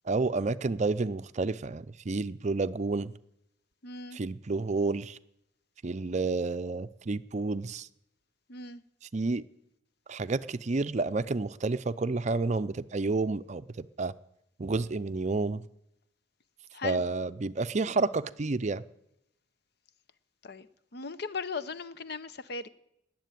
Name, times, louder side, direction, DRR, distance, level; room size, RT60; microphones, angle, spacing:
voice 1, 0.1-3.1 4.1-5.2 5.8-7.9 9.1-9.4 10.1-14.1 14.6-15.6 16.8-18.8, right 3 dB, 40° right, 0.5 m, -30 dB
voice 2, 3.8-4.2 8.5-8.8 16.7-17.0 20.4-22.7, left 4 dB, 55° left, 0.8 m, -38 dB
20.0 x 7.6 x 9.1 m
head